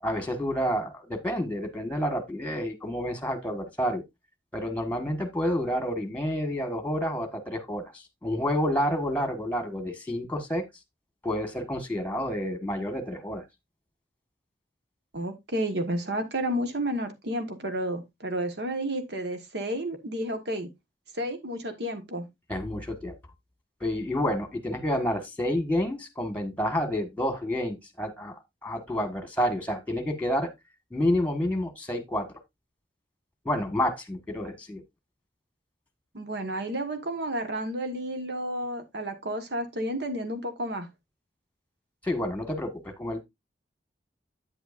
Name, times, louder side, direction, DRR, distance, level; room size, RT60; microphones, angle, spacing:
voice 1, 0.0-4.0 4.5-7.9 8.2-10.6 11.2-13.4 22.5-23.1 23.8-28.3 28.6-30.5 30.9-32.3 33.4-34.8 42.0-43.2, equal, 10° left, 1.5 m, -29 dB
voice 2, 15.1-20.7 21.1-22.2 36.1-40.9, right 1 dB, 65° right, 1.4 m, -31 dB
9.0 x 8.0 x 2.5 m
head